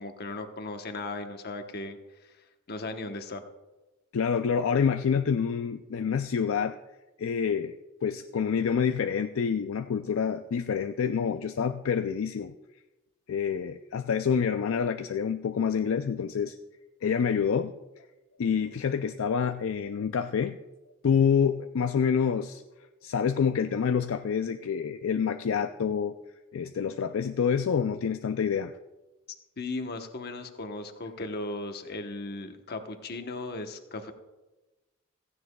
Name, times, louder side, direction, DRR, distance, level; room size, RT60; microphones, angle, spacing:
voice 1, 0.0-2.0 2.3-3.4 29.6-34.1, left 2 dB, 50° left, 6 dB, 1.0 m, -37 dB
voice 2, 4.1-6.8 7.2-7.7 8.0-12.5 13.3-16.6 17.0-18.0 18.4-20.6 21.0-22.6 23.0-26.2 26.5-28.7, left 6 dB, 70° left, 8 dB, 0.4 m, -27 dB
16.0 x 14.5 x 2.3 m, 1.1 s
head